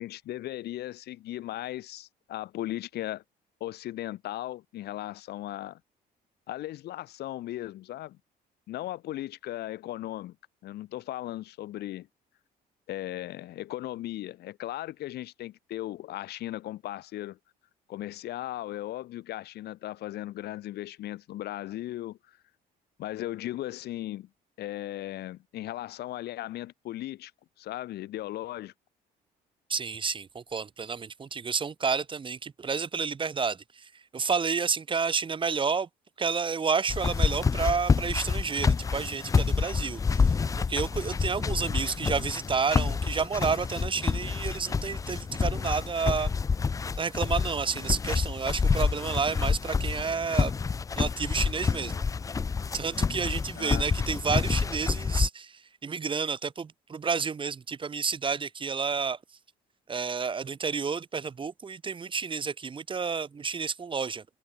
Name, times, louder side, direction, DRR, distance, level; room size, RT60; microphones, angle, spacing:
voice 1, 0.0-3.2 3.6-5.8 6.5-8.2 8.7-10.4 10.6-12.1 12.9-17.4 17.9-22.4 23.0-24.3 24.6-27.3 27.6-28.7 53.6-53.8, left 14 dB, 75° left, 5.2 m, -37 dB
voice 2, 29.7-35.9 36.2-40.3 40.7-46.3 47.0-50.5 51.0-52.0 52.7-59.2 59.9-64.2, right 5 dB, 30° right, 1.8 m, -30 dB
sound 1, 36.9-55.3, left 5 dB, 20° left, 0.4 m, -28 dB
cardioid pair, 110°, 17 cm